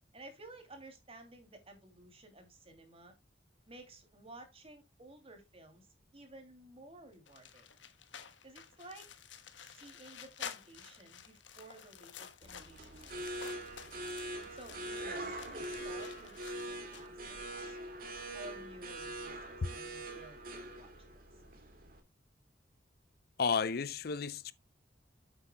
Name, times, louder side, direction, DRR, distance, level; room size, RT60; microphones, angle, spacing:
voice 1, 0.1-3.1 3.7-7.7 8.4-9.1 9.6-13.5 14.5-17.8 18.3-20.9 21.3-21.4, right 2 dB, 30° right, 2.7 m, -54 dB
sound 1, 7.3-17.1, left 7 dB, 85° left, 1.2 m, -51 dB
sound 2, 12.4-22.0, right 1 dB, 50° right, 2.3 m, -43 dB
voice 2, 23.4-24.5, left 5 dB, 55° left, 0.5 m, -32 dB
9.7 x 8.1 x 2.2 m
head